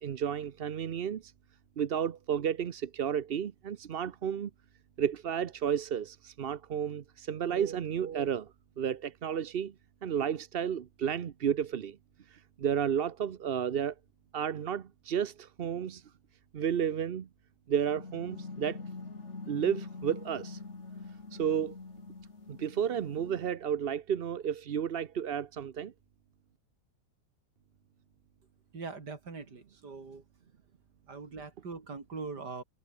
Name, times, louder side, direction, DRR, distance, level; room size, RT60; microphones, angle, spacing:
voice 1, 0.0-1.3 1.8-4.5 5.0-9.7 10.0-12.0 12.3-13.9 14.3-16.0 16.5-17.3 17.7-18.8 19.5-20.6 21.3-21.8 22.5-25.9, right 8 dB, 50° right, 0.8 m, -32 dB
sound 1, 17.9-23.5, left 3 dB, 45° left, 2.9 m, -44 dB
voice 2, 28.7-30.2 31.1-32.6, right 4 dB, 80° right, 4.0 m, -42 dB
omnidirectional pair, 1.8 m